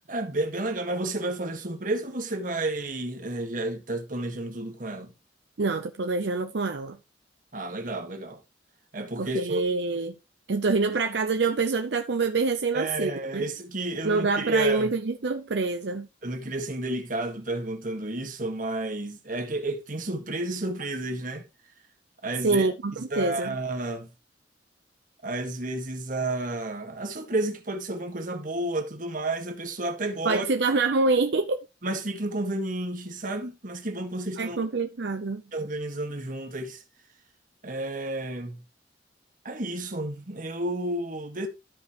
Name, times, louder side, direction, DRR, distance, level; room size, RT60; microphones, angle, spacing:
voice 1, 0.1-5.1 7.5-8.4 8.9-9.6 12.7-14.9 16.2-21.5 22.2-22.7 23.1-24.1 25.2-30.5 31.8-34.6 35.5-36.8 37.6-38.6 39.4-41.5, right 2 dB, 50° right, 1.6 m, -31 dB
voice 2, 5.6-7.0 9.2-10.2 10.5-13.5 14.0-16.1 22.4-23.6 30.2-31.6 34.4-35.4, right 3 dB, 75° right, 0.6 m, -26 dB
13.5 x 5.2 x 3.0 m
head